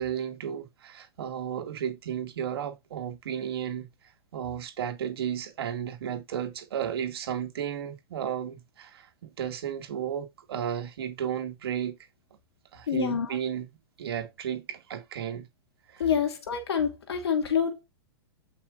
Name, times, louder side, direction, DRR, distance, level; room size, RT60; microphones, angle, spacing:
voice 1, 0.0-3.9 4.3-12.0 12.7-13.7 14.0-15.5 15.9-16.0, right 9 dB, 70° right, 2.5 m, -33 dB
voice 2, 12.9-13.3 16.0-17.8, left 7 dB, 80° left, 2.4 m, -27 dB
15.0 x 5.8 x 2.6 m
hypercardioid pair, 125°, 13 cm